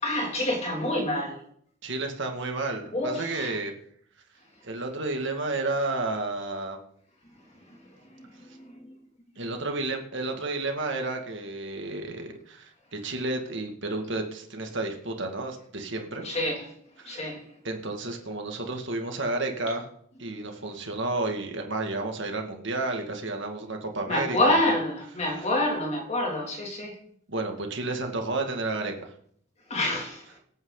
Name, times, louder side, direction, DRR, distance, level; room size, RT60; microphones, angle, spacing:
voice 1, 0.0-1.4 2.9-3.5 7.7-7.8 8.2-8.3 8.5-8.9 16.2-16.7 17.1-17.5 24.1-26.9 29.7-30.3, left 1 dB, 30° left, 0 dB, 2.7 m, -27 dB
voice 2, 1.8-3.7 4.6-6.8 9.4-16.2 17.0-17.3 17.6-19.8 20.2-24.7 27.3-29.1, right 2 dB, 55° right, 3 dB, 2.2 m, -31 dB
24.5 x 8.9 x 4.0 m, 0.65 s
head